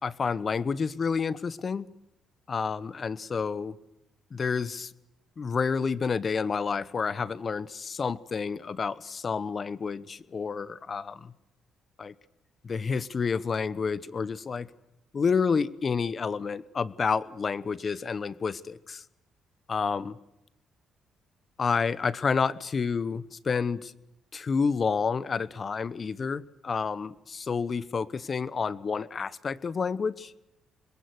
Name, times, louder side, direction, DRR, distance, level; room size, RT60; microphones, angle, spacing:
voice 1, 0.0-1.9 2.5-3.8 4.3-4.9 5.4-11.3 12.0-12.1 12.6-14.7 15.1-19.0 19.7-20.2 21.6-23.9 24.3-30.3, left 5 dB, 40° left, 18 dB, 1.1 m, -29 dB
26.0 x 21.5 x 8.1 m, 0.88 s
cardioid pair, 90°, 0 cm